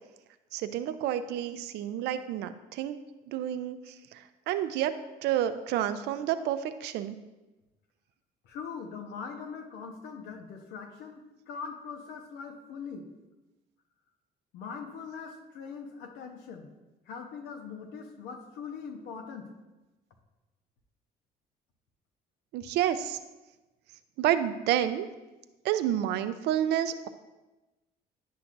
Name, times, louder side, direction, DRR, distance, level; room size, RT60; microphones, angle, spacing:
voice 1, 0.5-3.0 3.3-5.0 5.2-7.2 22.5-23.2 24.2-25.1 25.6-27.1, right 11 dB, 80° right, 11 dB, 0.5 m, -29 dB
voice 2, 8.4-13.1 14.5-16.7 17.1-19.5, left 5 dB, 90° left, 4 dB, 1.0 m, -41 dB
10.5 x 5.9 x 2.6 m, 1.1 s
cardioid pair, 110°, 17 cm